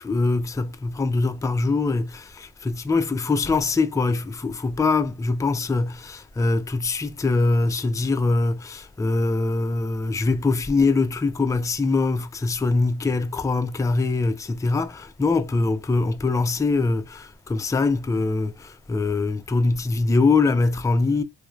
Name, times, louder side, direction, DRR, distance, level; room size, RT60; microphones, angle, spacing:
voice 1, 0.0-21.2, left 3 dB, 10° left, 0.4 m, -23 dB
3.0 x 2.0 x 2.4 m
supercardioid pair, 45°, 33 cm